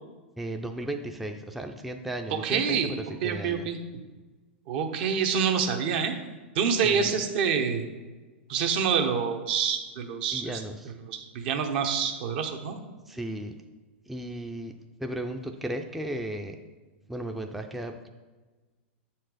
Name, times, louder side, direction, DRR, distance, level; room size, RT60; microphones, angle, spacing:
voice 1, 0.4-3.7 6.8-7.1 10.3-10.9 13.1-13.6 14.1-16.6 17.1-18.1, right 1 dB, 5° right, 4 dB, 0.4 m, -35 dB
voice 2, 2.4-2.9 3.2-3.8 4.7-6.1 6.5-7.8 8.5-10.6 11.1-12.8, right 6 dB, 60° right, 6 dB, 0.9 m, -27 dB
7.3 x 4.4 x 4.9 m, 1.3 s
hypercardioid pair, 115°, 6 cm